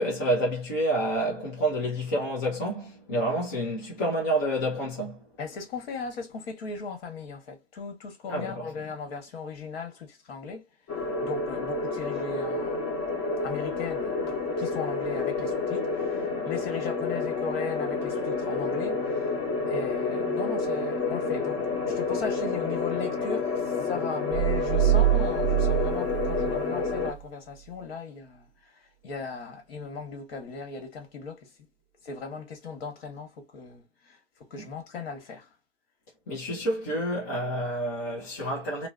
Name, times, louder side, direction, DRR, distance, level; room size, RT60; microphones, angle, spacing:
voice 1, 0.0-5.2 8.3-8.7 34.5-34.6 36.3-38.9, right 1 dB, 15° left, 0.3 m, -28 dB
voice 2, 5.4-10.7 11.2-12.9 13.4-19.4 19.7-31.5 32.0-34.2 34.5-35.5, left 4 dB, 55° left, 1.1 m, -37 dB
sound 1, 10.9-27.1, left 4 dB, 30° left, 1.0 m, -29 dB
sound 2, 24.3-27.2, right 16 dB, 30° right, 0.7 m, -25 dB
2.6 x 2.0 x 2.4 m
hypercardioid pair, 135°, 37 cm